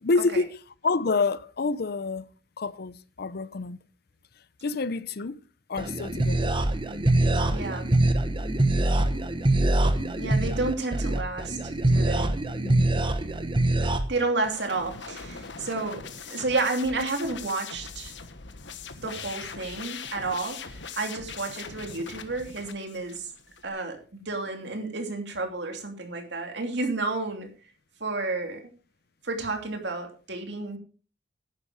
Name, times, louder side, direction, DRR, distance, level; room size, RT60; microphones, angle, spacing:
voice 1, 0.0-2.3 2.6-3.8 4.6-5.4 5.7-6.6 12.6-13.1, left 3 dB, 55° left, 0.6 m, -28 dB
sound 1, 5.8-14.0, right 2 dB, 25° right, 1.1 m, -24 dB
voice 2, 7.5-7.9 10.2-11.6 11.9-12.3 14.1-16.0 16.3-18.1 19.0-23.3 23.6-27.5 28.0-28.6 29.2-30.8, right 3 dB, 65° right, 2.7 m, -31 dB
sound 2, 14.4-23.7, left 6 dB, 70° left, 1.3 m, -41 dB
11.0 x 9.8 x 5.0 m
head